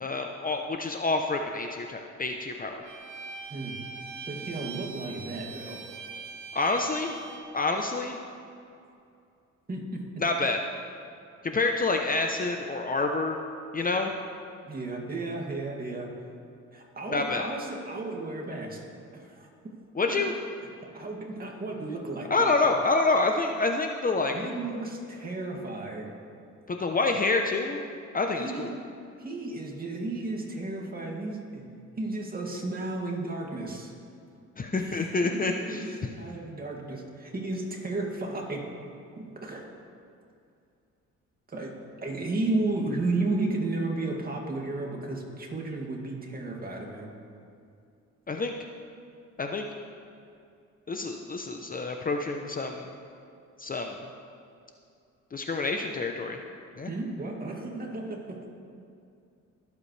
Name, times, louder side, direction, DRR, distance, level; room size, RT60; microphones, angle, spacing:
voice 1, 0.0-2.8 6.5-7.2 7.5-8.2 10.2-10.6 11.4-13.4 13.7-14.1 17.1-17.4 20.0-20.3 22.3-24.4 26.7-27.8 28.1-28.7 34.6-36.0 48.3-48.5 49.4-49.7 50.9-52.9 53.6-54.1 55.3-56.4 56.8-56.9, left 3 dB, 30° left, 3 dB, 0.8 m, -27 dB
Bowed string instrument, 2.8-7.5, right 5 dB, 85° right, 1.3 m, -42 dB
voice 2, 4.3-5.8 9.7-10.0 14.6-16.1 16.7-18.8 19.1-19.5 20.0-20.4 20.9-22.5 24.3-26.1 28.3-28.7 29.2-31.6 32.0-33.9 34.7-38.7 39.4-39.7 41.5-41.8 42.0-47.1 56.9-58.5, right 2 dB, 30° right, -1 dB, 2.4 m, -33 dB
21.0 x 8.2 x 3.3 m, 2.5 s
cardioid pair, 90°, 30 cm